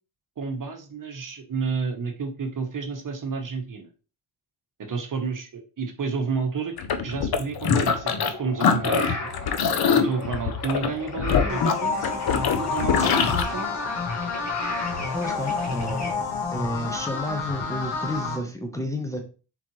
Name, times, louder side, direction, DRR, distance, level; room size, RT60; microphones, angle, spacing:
voice 1, 0.4-3.9 4.8-6.7 7.0-9.3 9.9-12.2 12.6-13.9, right 4 dB, 40° right, 4 dB, 1.1 m, -31 dB
sound 1, 6.8-8.3 8.6-13.4, left 6 dB, 50° left, 0.7 m, -23 dB
sound 2, 8.1-16.1, left 2 dB, 30° left, 1.7 m, -35 dB
sound 3, 11.5-18.4, left 4 dB, 75° left, 1.4 m, -29 dB
voice 2, 12.9-13.4 15.1-16.2 16.5-19.2, left 1 dB, 5° left, 2 dB, 0.9 m, -31 dB
4.1 x 3.9 x 3.0 m, 0.35 s
supercardioid pair, 65°, 49 cm